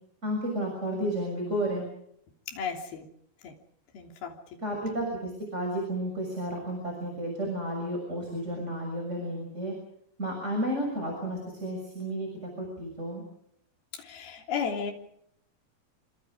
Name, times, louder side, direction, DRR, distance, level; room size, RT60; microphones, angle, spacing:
voice 1, 0.2-1.8 4.6-9.7 10.2-13.2, right 1 dB, 15° right, 1 dB, 6.8 m, -32 dB
voice 2, 2.5-3.0 3.4-3.5 3.9-4.3 13.9-14.9, left 6 dB, 60° left, 2 dB, 5.0 m, -34 dB
28.0 x 26.0 x 5.1 m, 0.71 s
omnidirectional pair, 5.0 m